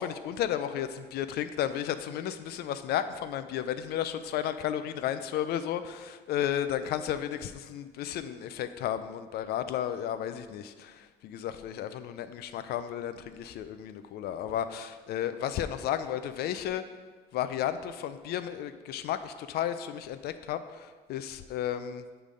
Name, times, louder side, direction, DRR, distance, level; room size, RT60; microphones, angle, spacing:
voice 1, 0.0-16.8 17.3-22.0, left 10 dB, 70° left, 11 dB, 0.5 m, -33 dB
7.5 x 3.3 x 5.1 m, 1.4 s
cardioid pair, 110°, 17 cm